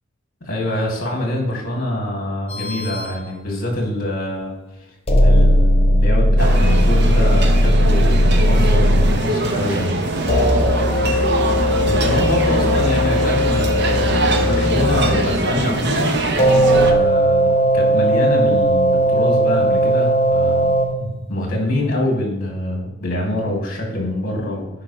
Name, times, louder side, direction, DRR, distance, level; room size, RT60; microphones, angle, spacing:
voice 1, 0.4-4.5 5.2-10.0 11.8-16.1 16.8-20.7 21.0-24.7, left 1 dB, 45° left, 0 dB, 2.6 m, -25 dB
sound 1, 2.5-3.1 5.1-9.2 10.3-15.3 16.4-20.9, equal, 30° left, 1.0 m, -17 dB
sound 2, 6.4-16.9, right 2 dB, 55° right, 0.9 m, -22 dB
10.5 x 4.9 x 3.2 m, 0.97 s
head